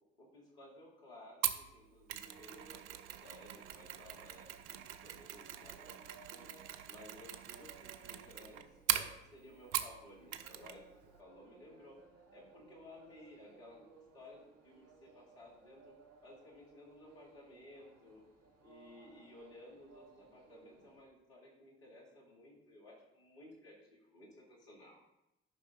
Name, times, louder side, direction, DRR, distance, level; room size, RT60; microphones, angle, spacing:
voice 1, 0.2-2.8 3.2-6.5 6.8-10.8 11.2-11.9 12.3-13.9 14.1-15.9 16.2-18.2 18.6-25.0, left 1 dB, 85° left, -3 dB, 2.4 m, -57 dB
Mechanisms, 1.4-10.0 10.3-10.8 11.0-11.2, right 11 dB, 75° right, 0.7 m, -41 dB
sound 1, 2.2-21.0, right 4 dB, 55° right, 2.2 m, -62 dB
10.5 x 5.3 x 3.7 m, 0.88 s
hypercardioid pair, 55°, 30 cm